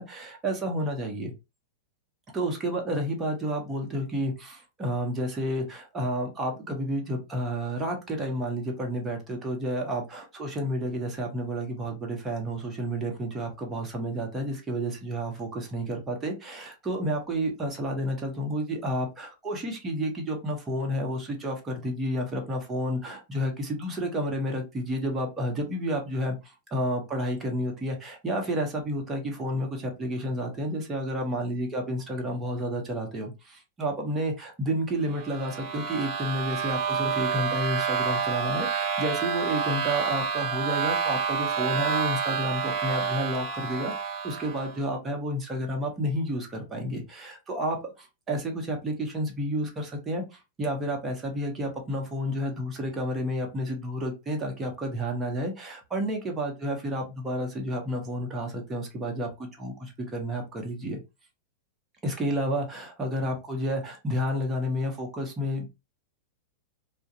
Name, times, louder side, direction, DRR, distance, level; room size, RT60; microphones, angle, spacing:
voice 1, 0.0-1.3 2.3-43.9 44.2-61.0 62.0-65.7, equal, 20° right, 1 dB, 0.9 m, -30 dB
sound 1, 35.1-44.8, right 6 dB, 40° right, 0.5 m, -29 dB
2.4 x 2.1 x 2.8 m, 0.26 s
hypercardioid pair, 130°, 0 cm